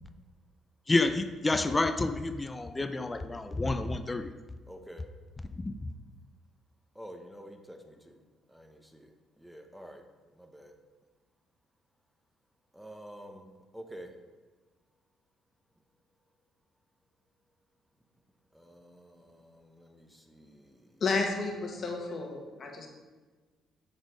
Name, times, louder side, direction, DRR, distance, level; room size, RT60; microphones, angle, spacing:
voice 1, 0.9-4.3 5.6-5.7, left 2 dB, 25° left, 9 dB, 0.5 m, -29 dB
voice 2, 4.7-5.0 6.9-8.2 8.5-10.0 10.4-10.8 12.7-13.4 13.7-14.1 18.5-20.9, equal, ahead, 4 dB, 1.2 m, -49 dB
voice 3, 21.0-22.9, left 3 dB, 50° left, 2 dB, 1.6 m, -32 dB
7.9 x 4.2 x 5.2 m, 1.3 s
supercardioid pair, 65°, 0 cm